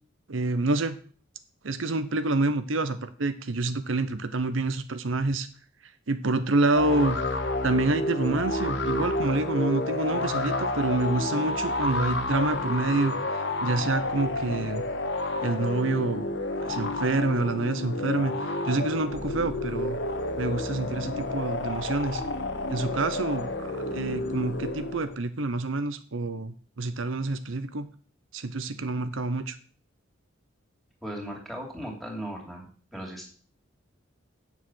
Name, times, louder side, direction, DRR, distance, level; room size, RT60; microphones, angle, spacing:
voice 1, 0.3-1.0 1.6-5.5 6.1-7.2 7.6-14.8 15.4-16.3 16.6-20.0 20.4-22.2 22.7-27.9 28.3-29.6, right 2 dB, 80° right, 11 dB, 0.8 m, -27 dB
sound 1, 6.7-25.2, left 2 dB, 60° left, 1.4 m, -30 dB
voice 2, 31.0-32.7 32.9-33.3, equal, ahead, 0 dB, 2.9 m, -37 dB
8.3 x 7.3 x 6.3 m, 0.41 s
head